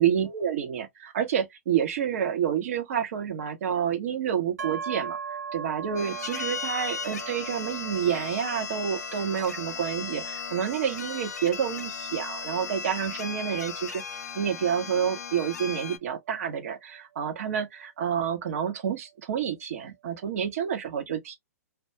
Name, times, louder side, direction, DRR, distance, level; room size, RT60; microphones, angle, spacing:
voice 1, 0.0-5.2 5.5-14.0 14.3-21.4, right 8 dB, 60° right, 0.9 m, -29 dB
sound 1, 4.6-18.3, right 6 dB, 80° right, 0.4 m, -42 dB
sound 2, 6.0-16.0, left 6 dB, 80° left, 0.4 m, -36 dB
2.3 x 2.2 x 2.8 m
hypercardioid pair, 120°, 9 cm